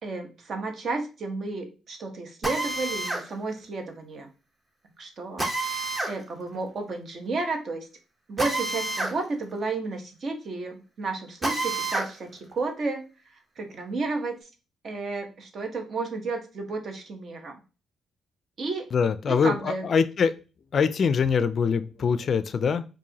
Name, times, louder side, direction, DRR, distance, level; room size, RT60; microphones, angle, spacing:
voice 1, 0.0-4.3 5.0-5.5 6.1-7.9 8.3-13.1 13.6-14.4 14.8-17.6 18.6-18.9 19.3-19.9, right 3 dB, 55° right, 0.9 m, -32 dB
Drill, 2.4-3.3 5.4-6.2 8.4-9.2 9.5-9.6 11.4-12.1, right 2 dB, 20° right, 0.9 m, -28 dB
voice 2, 18.9-20.3 20.7-22.9, left 6 dB, 50° left, 0.3 m, -23 dB
4.7 x 2.5 x 2.8 m
cardioid pair, 90°, 0 cm